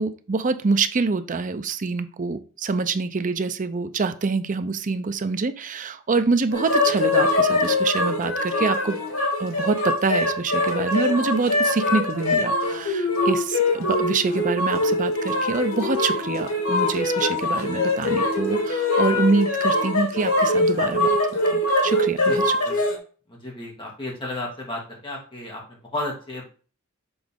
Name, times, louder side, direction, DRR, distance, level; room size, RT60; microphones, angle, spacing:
voice 1, 0.0-9.0 9.4-21.2 21.5-22.6, right 4 dB, 40° right, 10 dB, 0.5 m, -25 dB
sound 1, 6.5-23.0, left 2 dB, 90° left, 1.7 m, -23 dB
voice 2, 23.3-26.4, left 1 dB, 25° left, -2 dB, 2.1 m, -33 dB
6.9 x 4.1 x 3.6 m, 0.39 s
head